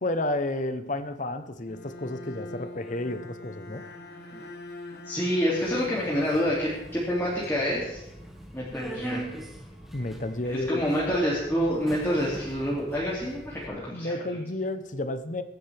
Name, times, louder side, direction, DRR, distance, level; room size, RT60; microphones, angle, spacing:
voice 1, 0.0-3.8 9.9-10.8 13.9-15.4, left 1 dB, 45° left, 10 dB, 0.9 m, -31 dB
Bowed string instrument, 1.7-7.6, left 2 dB, 60° left, 1.6 m, -44 dB
voice 2, 5.0-8.0 8.5-9.2 10.4-14.1, equal, 15° left, -7 dB, 2.7 m, -27 dB
Subway metro underground, 5.6-13.7, right 1 dB, ahead, 1.7 m, -42 dB
22.5 x 10.5 x 3.5 m, 0.88 s
head